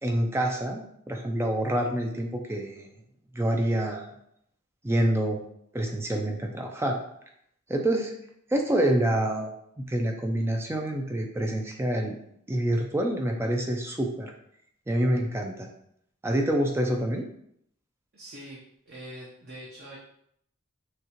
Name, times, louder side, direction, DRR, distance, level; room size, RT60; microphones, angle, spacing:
voice 1, 0.0-2.9 3.3-4.1 4.8-5.4 5.7-7.0 7.7-8.1 8.5-9.5 9.8-12.2 12.5-14.3 14.9-15.7 16.2-17.2, right 1 dB, 10° right, 2 dB, 0.4 m, -27 dB
voice 2, 18.1-20.0, right 1 dB, 50° right, -5 dB, 0.8 m, -44 dB
6.3 x 2.4 x 2.9 m, 0.71 s
head